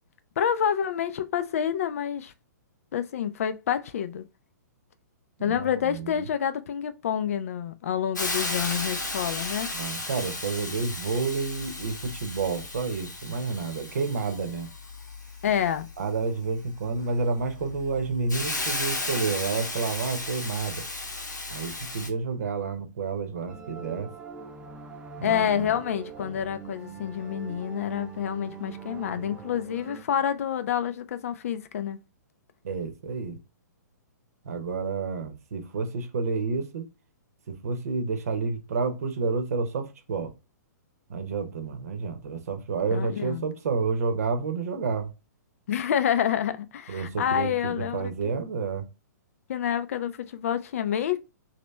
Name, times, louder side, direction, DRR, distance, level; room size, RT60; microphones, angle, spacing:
voice 1, 0.4-2.3 2.9-4.3 5.4-9.7 15.4-15.9 25.2-32.0 42.9-43.4 45.7-48.1 49.5-51.2, left 9 dB, 50° left, 0.4 m, -28 dB
voice 2, 5.4-6.3 9.7-14.7 16.0-20.8 21.5-24.1 25.2-25.7 32.6-33.4 34.4-36.9 37.5-40.3 41.1-45.1 46.9-48.9, right 4 dB, 60° right, 0.9 m, -30 dB
Hiss, 8.2-22.1, left 2 dB, 80° left, 0.8 m, -34 dB
sound 1, 23.5-30.0, right 6 dB, 10° right, 0.5 m, -42 dB
3.1 x 2.8 x 3.2 m
figure-of-eight pair, 115°, 10 cm